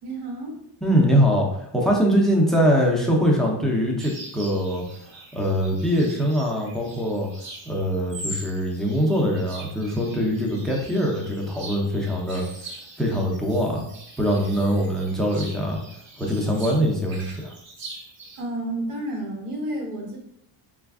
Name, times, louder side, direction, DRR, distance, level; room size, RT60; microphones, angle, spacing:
voice 1, 0.0-0.6 18.4-20.2, right 1 dB, 90° right, 0 dB, 1.1 m, -31 dB
voice 2, 0.8-7.3 7.7-12.4 13.0-13.8 14.2-15.8 16.2-17.5, equal, ahead, -1 dB, 0.3 m, -23 dB
sound 1, 4.0-18.4, right 2 dB, 65° right, 1.1 m, -42 dB
3.3 x 2.4 x 3.4 m, 0.72 s
cardioid pair, 160°, 49 cm